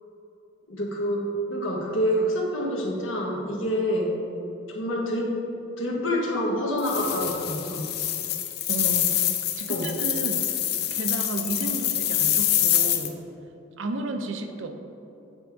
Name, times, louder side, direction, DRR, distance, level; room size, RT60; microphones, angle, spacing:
voice 1, 0.7-1.2 1.5-4.2 4.7-5.3 5.8-7.9 9.7-9.9, equal, 85° left, -1 dB, 1.2 m, -27 dB
sound 1, 6.8-13.1, left 11 dB, 55° left, 0.5 m, -26 dB
voice 2, 8.7-10.6 10.9-13.2 13.8-14.7, right 2 dB, 80° right, 6 dB, 0.6 m, -33 dB
8.8 x 3.5 x 4.5 m, 2.9 s
head